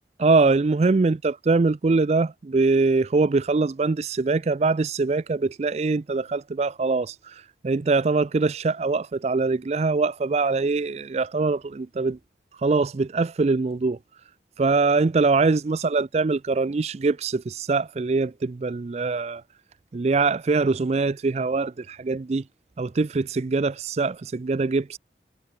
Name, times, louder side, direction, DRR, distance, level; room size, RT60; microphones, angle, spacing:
voice 1, 0.2-12.2 12.6-14.0 14.6-19.4 19.9-22.4 22.8-25.0, right 3 dB, 35° right, 0.4 m, -23 dB
head